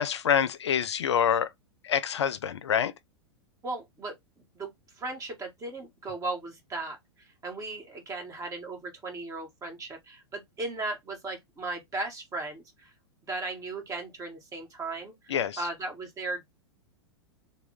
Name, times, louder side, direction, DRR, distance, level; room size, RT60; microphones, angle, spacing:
voice 1, 0.0-1.5 1.8-2.9 15.3-15.6, left 8 dB, 80° left, 0.4 m, -26 dB
voice 2, 3.6-4.7 5.0-12.9 13.3-15.1 15.6-16.4, right 2 dB, 25° right, 1.5 m, -36 dB
3.5 x 2.2 x 3.3 m
hypercardioid pair, 105°, 14 cm